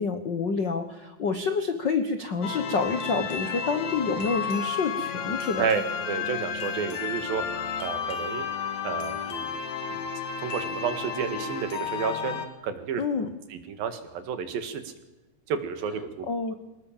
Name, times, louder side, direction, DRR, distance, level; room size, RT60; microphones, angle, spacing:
voice 1, 0.0-5.7 13.0-13.3 16.3-16.5, left 4 dB, 75° left, 9 dB, 1.0 m, -28 dB
sound 1, 2.4-12.5, left 7 dB, 55° left, 2.8 m, -32 dB
voice 2, 5.6-7.4 7.8-8.5 8.8-9.6 9.9-10.1 10.4-13.0 13.5-14.9 15.5-16.3, right 7 dB, 75° right, 9 dB, 3.6 m, -31 dB
25.0 x 19.5 x 7.4 m, 1.0 s
omnidirectional pair, 4.2 m